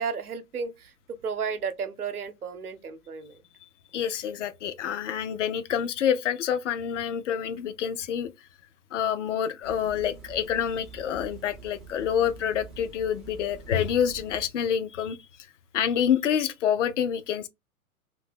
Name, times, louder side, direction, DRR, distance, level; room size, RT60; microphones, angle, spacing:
voice 1, 0.0-3.4, right 6 dB, 80° right, 0.8 m, -33 dB
voice 2, 3.9-8.3 8.9-15.2 15.7-17.5, left 8 dB, 55° left, 0.6 m, -27 dB
sound 1, 9.6-14.6, right 4 dB, ahead, 0.4 m, -46 dB
2.7 x 2.6 x 3.6 m
figure-of-eight pair, 105°, 44 cm